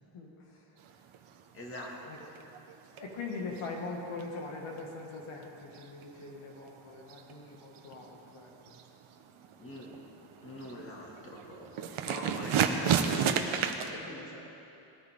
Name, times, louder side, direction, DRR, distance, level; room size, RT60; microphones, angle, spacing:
voice 1, 0.1-0.8 2.1-2.2 2.9-8.8, left 3 dB, 70° left, -1 dB, 2.1 m, -42 dB
sound 1, 0.8-5.1 5.3-13.9, right 7 dB, 75° right, 1.1 m, -33 dB
voice 2, 1.5-2.3 9.6-10.0 10.4-14.4, left 1 dB, 25° left, -3 dB, 2.1 m, -44 dB
20.0 x 14.0 x 3.7 m, 2.8 s
wide cardioid pair, 155°, 50 cm